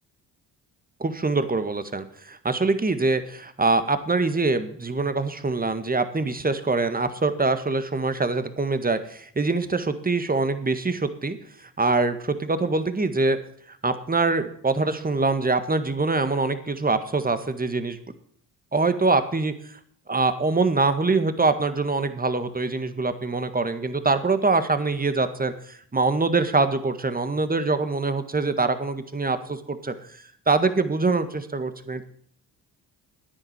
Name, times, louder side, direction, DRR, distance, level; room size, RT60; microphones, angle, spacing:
voice 1, 1.0-11.4 11.8-13.4 13.8-18.0 18.7-19.5 20.1-25.5 25.9-29.9 30.5-32.0, right 3 dB, 20° right, 10 dB, 1.7 m, -24 dB
10.0 x 9.9 x 8.2 m, 0.63 s
hypercardioid pair, 55°, 45 cm